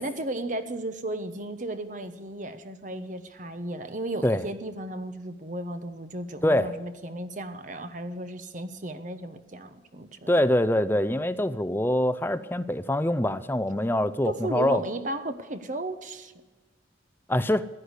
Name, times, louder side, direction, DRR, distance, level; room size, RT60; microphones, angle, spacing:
voice 1, 0.0-10.4 14.2-16.3, right 1 dB, 45° right, 10 dB, 1.1 m, -34 dB
voice 2, 10.3-14.8 17.3-17.7, left 1 dB, 10° left, 12 dB, 0.5 m, -24 dB
15.5 x 10.0 x 8.2 m, 1.2 s
head